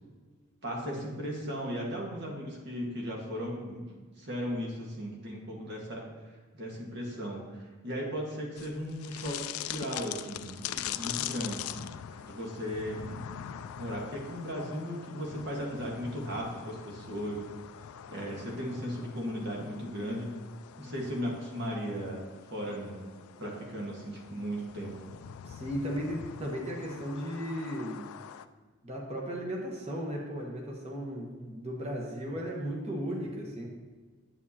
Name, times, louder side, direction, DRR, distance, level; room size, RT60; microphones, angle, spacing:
voice 1, 0.6-6.0 6.5-11.7 12.2-13.2 13.8-17.4 18.1-20.4 20.8-22.2 22.5-23.1 23.4-24.9, equal, 50° right, -1 dB, 1.6 m, -36 dB
sound 1, 8.6-28.5, left 10 dB, 80° left, 0.3 m, -43 dB
voice 2, 25.5-28.0 28.8-33.7, equal, 30° right, -2 dB, 1.2 m, -36 dB
8.7 x 7.4 x 2.8 m, 1.4 s
head